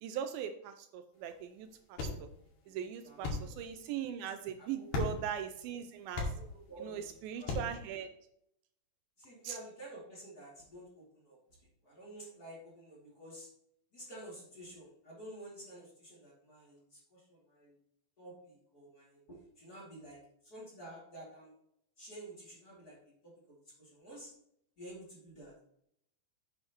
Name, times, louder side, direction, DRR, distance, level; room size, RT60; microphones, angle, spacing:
voice 1, 0.0-2.1 2.7-6.3 6.8-8.1 9.4-9.6, right 9 dB, 80° right, 8 dB, 2.3 m, -40 dB
sound 1, 1.2-7.9, left 3 dB, 85° left, 4.1 m, -41 dB
voice 2, 4.6-4.9 6.3-7.8 9.2-11.4 11.8-13.5 13.9-17.8 18.2-21.5 22.0-24.3 24.8-25.6, right 1 dB, 30° left, -4 dB, 2.5 m, -51 dB
9.2 x 7.7 x 3.0 m, 0.73 s
omnidirectional pair, 4.4 m